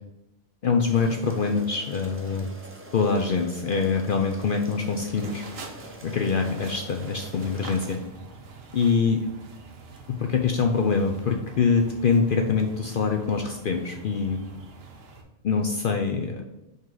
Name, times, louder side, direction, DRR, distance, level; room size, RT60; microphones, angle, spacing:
voice 1, 0.6-2.5 2.9-5.4 6.0-8.0 8.7-9.3 10.1-14.4 15.4-16.4, left 5 dB, 65° left, 4 dB, 0.5 m, -24 dB
sound 1, 0.9-7.9, right 1 dB, 15° right, 0.5 m, -45 dB
sound 2, 4.8-15.2, right 4 dB, 90° right, 1.3 m, -45 dB
5.5 x 4.5 x 3.8 m, 0.97 s
omnidirectional pair, 1.3 m